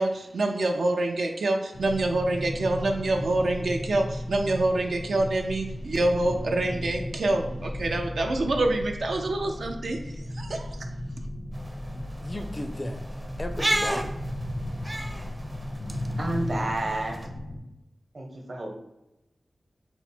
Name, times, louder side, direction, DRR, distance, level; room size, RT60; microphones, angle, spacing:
voice 1, 0.0-10.0 10.3-10.9, right 2 dB, 90° right, 2 dB, 0.4 m, -26 dB
sound 1, 1.7-17.6, left 1 dB, 90° left, 1.2 m, -35 dB
sound 2, 11.5-17.3, right 1 dB, 25° right, 0.5 m, -33 dB
voice 2, 11.9-14.1, left 1 dB, 35° left, 7 dB, 0.4 m, -36 dB
voice 3, 16.2-17.3 18.1-18.7, right 2 dB, 60° right, 2 dB, 0.9 m, -30 dB
4.4 x 2.1 x 4.1 m, 0.90 s
wide cardioid pair, 65°, 0 cm